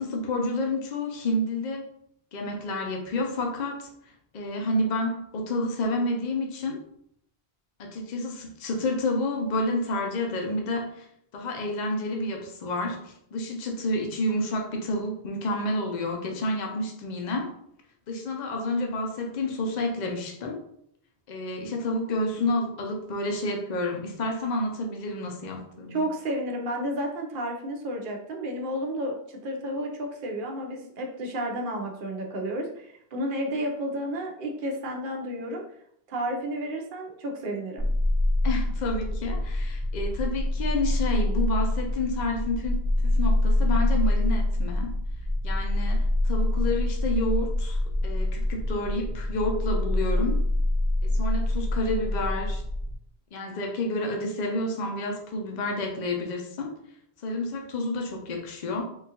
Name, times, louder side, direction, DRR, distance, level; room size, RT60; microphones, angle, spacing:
voice 1, 0.0-1.9 2.3-3.9 4.3-6.8 7.8-11.1 11.3-17.5 18.1-20.6 21.3-26.0 38.4-45.0 45.4-50.4 51.0-52.6 53.3-56.7 57.2-58.8, left 1 dB, 50° left, 2 dB, 0.6 m, -29 dB
voice 2, 25.9-35.6 36.1-37.9, right 1 dB, 60° right, 1 dB, 0.8 m, -31 dB
sound 1, 37.8-52.9, left 1 dB, 85° left, 1.9 m, -26 dB
3.6 x 2.4 x 2.8 m, 0.72 s
omnidirectional pair, 1.1 m